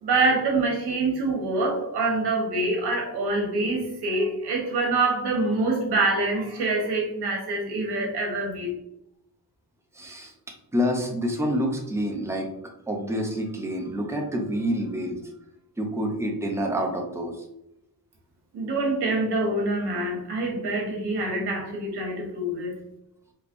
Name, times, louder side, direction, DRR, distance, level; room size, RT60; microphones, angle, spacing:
voice 1, 0.0-8.7 18.5-22.8, right 2 dB, 85° right, -1 dB, 1.2 m, -25 dB
voice 2, 9.9-10.3 10.7-12.5 12.9-15.2 15.8-17.5, equal, 5° right, 2 dB, 0.4 m, -27 dB
3.3 x 3.2 x 2.5 m, 0.82 s
wide cardioid pair, 145°, 39 cm